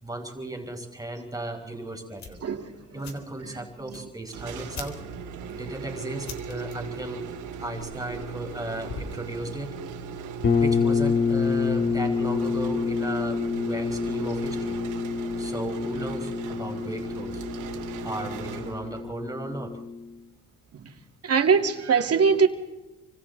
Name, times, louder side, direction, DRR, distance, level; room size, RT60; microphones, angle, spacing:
voice 1, 0.0-2.4 2.9-5.0 5.5-7.3 7.6-9.7 10.6-14.8 15.4-17.4 18.0-19.8, right 1 dB, 10° right, 4.8 m, -35 dB
sound 1, 2.2-9.3, left 4 dB, 65° left, 4.1 m, -45 dB
voice 2, 2.4-4.1 5.0-5.1 5.5-5.6 20.7-20.9 21.2-22.5, right 6 dB, 55° right, 2.5 m, -24 dB
sound 2, 4.3-19.2, right 6 dB, 90° right, 2.6 m, -38 dB
sound 3, 10.4-20.1, left 5 dB, 40° left, 2.5 m, -27 dB
29.0 x 25.0 x 4.1 m
cardioid pair, 90°, 30 cm